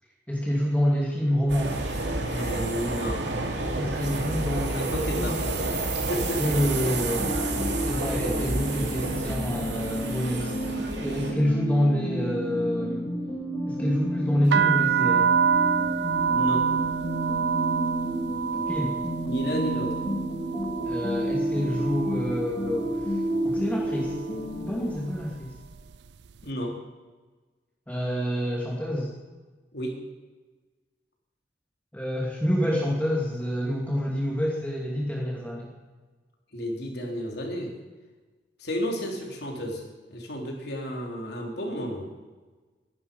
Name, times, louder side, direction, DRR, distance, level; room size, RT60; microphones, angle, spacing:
voice 1, 0.3-1.9 3.8-5.4 6.4-7.3 7.8-10.5 11.0-13.1 13.7-15.3 18.7-19.0 20.8-22.9 23.4-24.2 24.6-25.5 27.9-29.1 31.9-35.7, equal, 10° left, -3 dB, 2.4 m, -27 dB
sound 1, 1.5-11.3, right 2 dB, 90° right, 2.7 m, -30 dB
voice 2, 2.3-3.3 3.6-4.0 4.7-5.8 6.1-6.4 16.3-16.7 19.2-20.0 26.4-26.8 29.7-30.0 36.5-37.7 38.6-39.8 40.1-42.0, equal, 65° left, 0 dB, 3.7 m, -32 dB
sound 2, 7.2-25.1, equal, 30° left, 2.7 m, -31 dB
sound 3, 14.5-22.4 22.7-23.3 23.9-24.2 24.5-26.0, right 7 dB, 70° right, 0.4 m, -27 dB
21.5 x 11.0 x 5.5 m, 1.3 s
head